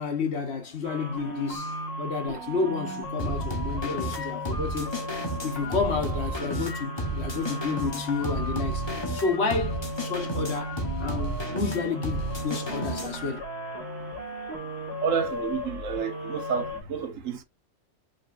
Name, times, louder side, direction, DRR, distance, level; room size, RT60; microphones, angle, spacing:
voice 1, 0.0-5.0 5.4-8.8 9.1-13.5, left 4 dB, 60° left, 1.4 m, -30 dB
sound 1, 0.8-16.8, equal, 35° right, 2.0 m, -36 dB
sound 2, 3.2-13.3, right 1 dB, 20° left, 1.1 m, -33 dB
voice 2, 15.0-17.4, right 7 dB, 90° right, 1.3 m, -30 dB
5.2 x 3.4 x 2.5 m
omnidirectional pair, 1.3 m